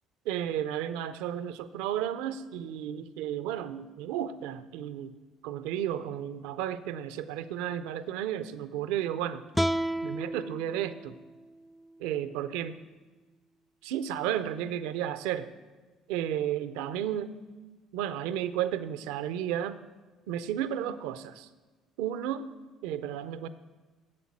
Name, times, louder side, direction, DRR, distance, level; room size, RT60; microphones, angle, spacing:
voice 1, 0.3-5.1 5.4-9.4 10.0-11.2 12.0-12.7 13.8-15.5 16.1-17.3 17.9-19.8 20.3-21.5 22.0-22.5 22.8-23.5, right 10 dB, 85° right, 13 dB, 0.5 m, -33 dB
sound 1, 9.5-12.7, right 1 dB, ahead, 0.3 m, -33 dB
7.8 x 7.7 x 7.2 m, 1.3 s
supercardioid pair, 75°, 0 cm